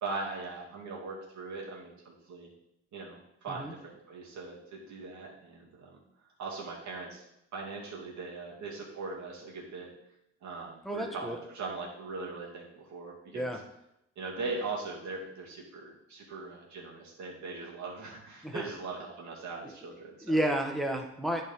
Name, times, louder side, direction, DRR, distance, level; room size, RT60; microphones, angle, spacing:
voice 1, 0.0-2.5 2.9-6.0 6.4-7.2 7.5-9.9 10.4-13.5 14.2-20.4, right 3 dB, 70° right, -2 dB, 2.4 m, -40 dB
voice 2, 10.8-11.3 13.3-13.6 18.4-18.7 20.2-21.4, right 1 dB, ahead, 2 dB, 1.3 m, -31 dB
10.5 x 4.4 x 3.6 m, 0.82 s
cardioid pair, 90°, 30 cm